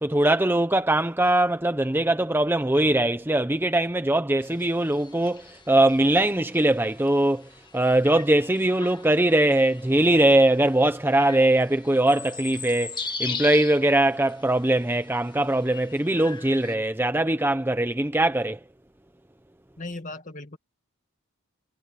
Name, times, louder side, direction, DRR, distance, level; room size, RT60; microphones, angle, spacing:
voice 1, 0.0-18.6, right 1 dB, 10° right, 0.7 m, -21 dB
sound 1, 4.4-16.8, left 5 dB, 20° left, 1.8 m, -40 dB
voice 2, 19.8-20.6, left 2 dB, 35° left, 2.0 m, -37 dB
head